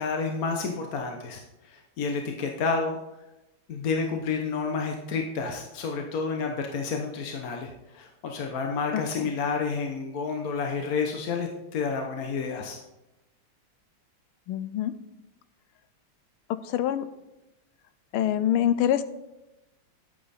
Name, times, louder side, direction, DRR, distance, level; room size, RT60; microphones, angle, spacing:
voice 1, 0.0-3.0 3.7-12.8, left 4 dB, 55° left, 3 dB, 1.1 m, -30 dB
voice 2, 8.9-9.3 14.5-14.9 16.5-17.1 18.1-19.0, left 11 dB, 90° left, 13 dB, 1.5 m, -25 dB
10.5 x 8.6 x 4.2 m, 0.96 s
omnidirectional pair, 2.3 m